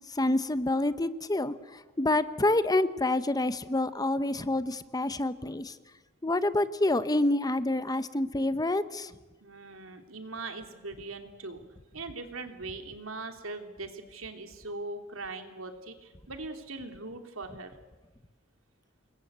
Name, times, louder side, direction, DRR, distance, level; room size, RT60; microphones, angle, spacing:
voice 1, 0.2-1.5 2.0-5.7 6.2-9.1, left 2 dB, 20° left, 13 dB, 0.9 m, -27 dB
voice 2, 9.4-11.6 11.9-17.8, right 3 dB, 85° right, 6 dB, 3.2 m, -40 dB
28.0 x 21.5 x 8.2 m, 1.1 s
head